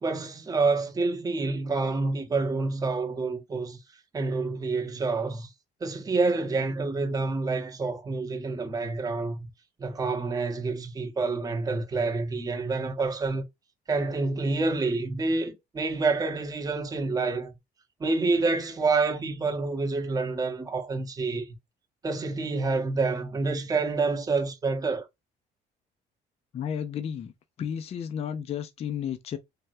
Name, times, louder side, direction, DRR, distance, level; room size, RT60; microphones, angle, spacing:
voice 1, 0.0-3.8 4.1-5.5 5.8-9.5 9.8-13.4 13.9-17.5 18.0-21.5 22.0-25.1, right 3 dB, 20° right, 0.8 m, -28 dB
voice 2, 26.5-27.3 27.6-29.4, left 8 dB, 40° left, 0.4 m, -32 dB
3.3 x 2.2 x 2.6 m
cardioid pair, 110°, 17 cm